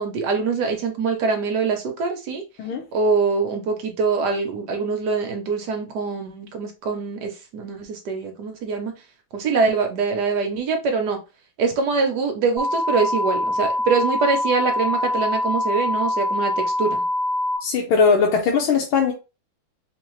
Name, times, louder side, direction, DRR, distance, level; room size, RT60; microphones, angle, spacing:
voice 1, 0.0-2.4 2.9-8.9 9.3-11.2 11.6-17.0, right 4 dB, 65° right, 1.2 m, -24 dB
sound 1, 12.6-17.6, left 1 dB, 25° right, 1.2 m, -24 dB
voice 2, 17.6-19.1, left 5 dB, 85° left, 1.6 m, -19 dB
3.5 x 2.8 x 3.1 m
omnidirectional pair, 2.2 m